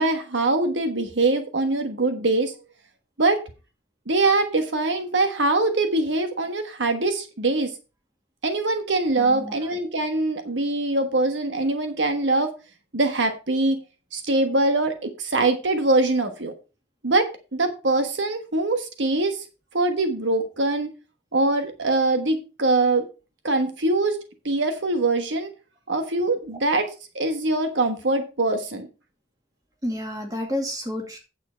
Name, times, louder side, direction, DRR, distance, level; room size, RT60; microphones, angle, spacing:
voice 1, 0.0-2.5 3.2-3.4 4.1-7.7 8.4-12.5 12.9-13.8 14.1-16.5 17.0-19.4 19.7-20.9 21.3-23.1 23.4-24.2 24.4-25.5 25.9-26.9 27.1-28.9, right 2 dB, 75° right, 7 dB, 1.3 m, -23 dB
voice 2, 9.2-9.5 29.8-31.2, left 1 dB, 20° right, 2 dB, 2.3 m, -30 dB
9.0 x 7.1 x 4.5 m, 0.31 s
head